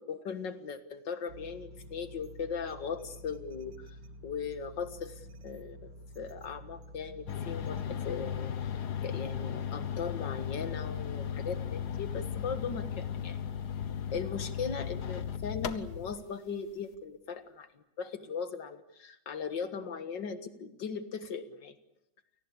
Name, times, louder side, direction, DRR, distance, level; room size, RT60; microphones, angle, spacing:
voice 1, 0.1-4.0 4.2-8.5 9.0-13.4 14.1-21.8, left 6 dB, 45° left, 10 dB, 1.7 m, -38 dB
sound 1, 1.3-8.4, equal, 55° right, 0.9 m, -50 dB
sound 2, 7.3-16.2, left 8 dB, 85° left, 0.8 m, -36 dB
29.0 x 19.0 x 8.6 m, 0.81 s
omnidirectional pair, 3.5 m